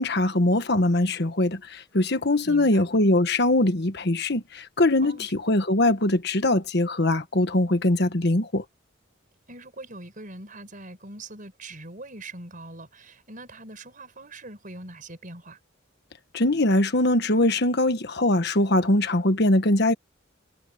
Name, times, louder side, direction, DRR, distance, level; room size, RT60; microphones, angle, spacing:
voice 1, 0.0-8.6 16.3-19.9, left 1 dB, 55° left, 1.4 m, -22 dB
voice 2, 2.4-3.0 5.0-5.3 9.5-15.6, right 2 dB, 45° right, 4.9 m, -42 dB
head